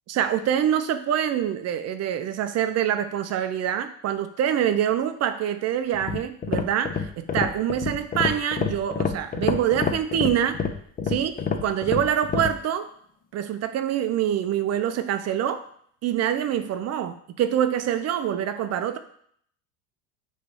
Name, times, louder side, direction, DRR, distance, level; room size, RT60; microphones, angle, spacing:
voice 1, 0.1-10.6 11.1-12.9 13.3-15.6 16.0-19.0, right 10 dB, 40° right, 9 dB, 0.6 m, -25 dB
sound 1, 5.9-12.6, left 6 dB, 20° left, 0.6 m, -28 dB
6.6 x 3.2 x 5.5 m, 0.64 s
hypercardioid pair, 90°, 40 cm